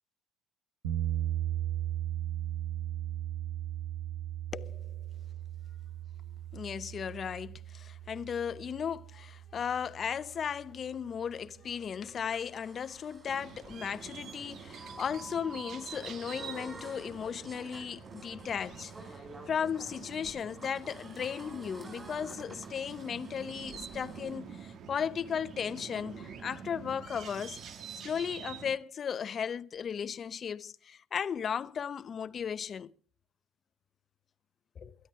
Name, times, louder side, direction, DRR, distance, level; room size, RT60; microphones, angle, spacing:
sound 1, 0.8-10.9, right 12 dB, 90° right, 1.4 m, -37 dB
voice 1, 4.5-5.0 6.5-27.6 28.0-32.9 34.8-35.0, left 7 dB, 45° left, 0.7 m, -36 dB
sound 2, 10.7-24.4, right 2 dB, 20° right, 6.0 m, -51 dB
sound 3, 13.2-28.8, right 7 dB, 55° right, 1.5 m, -47 dB
23.0 x 13.0 x 3.7 m
hypercardioid pair, 70°, 0 cm